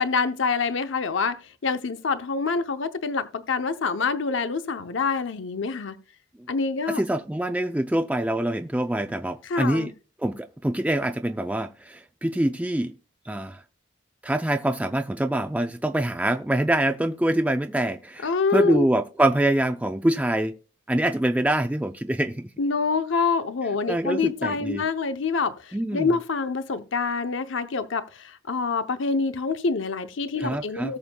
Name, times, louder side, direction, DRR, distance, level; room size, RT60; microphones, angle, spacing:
voice 1, 0.0-6.0 6.5-7.0 9.4-9.9 18.2-18.9 22.6-31.0, left 4 dB, 75° left, 0.7 m, -26 dB
voice 2, 6.9-9.9 10.2-12.9 13.3-13.6 14.2-20.6 20.9-22.5 23.9-24.8 25.7-26.1 30.4-31.0, right 1 dB, 5° right, 0.4 m, -25 dB
18.5 x 7.0 x 2.2 m
head